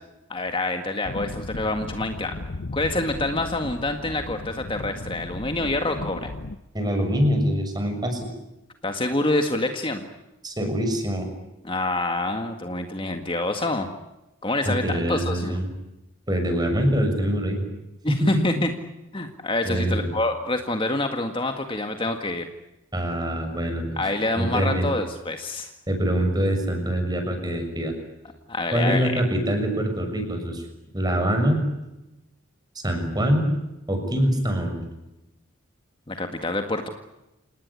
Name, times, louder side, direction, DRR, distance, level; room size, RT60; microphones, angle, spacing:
voice 1, 0.3-2.4 2.7-6.3 8.8-10.0 11.6-13.9 14.4-15.6 18.0-18.7 19.1-22.5 24.0-25.7 28.5-29.2 36.1-36.9, left 2 dB, 25° left, 6 dB, 1.8 m, -26 dB
sound 1, 1.0-6.6, left 2 dB, 60° left, 1.0 m, -36 dB
voice 2, 6.7-8.2 10.4-11.3 14.6-15.7 16.3-17.7 18.1-18.5 19.6-20.1 22.9-24.0 24.3-24.9 25.9-27.9 28.7-30.6 30.9-31.6 32.7-33.5 33.9-34.8, equal, 20° right, 5 dB, 6.6 m, -24 dB
29.0 x 19.0 x 9.7 m, 0.95 s
head